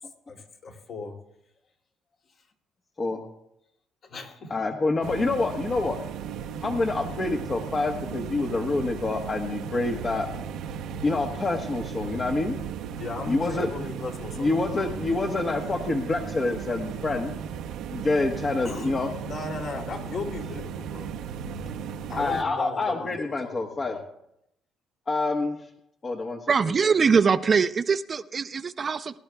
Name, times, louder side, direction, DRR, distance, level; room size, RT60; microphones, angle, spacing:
voice 1, 0.3-1.1 4.0-4.5 12.0-12.3 13.0-15.4 18.6-18.9 19.2-21.1 22.1-24.0, left 3 dB, 55° left, 1 dB, 2.8 m, -37 dB
voice 2, 4.5-6.0 6.6-10.3 11.0-12.5 13.3-13.7 14.4-17.3 17.9-19.1 22.2-24.0 25.1-25.6 26.0-26.4, left 3 dB, 35° left, 3 dB, 1.2 m, -27 dB
sound 1, 5.0-22.4, right 7 dB, 85° right, 0.8 m, -36 dB
voice 3, 26.5-29.2, right 5 dB, 35° right, 11 dB, 0.5 m, -22 dB
23.0 x 12.0 x 2.3 m, 0.80 s
cardioid pair, 105°, 0 cm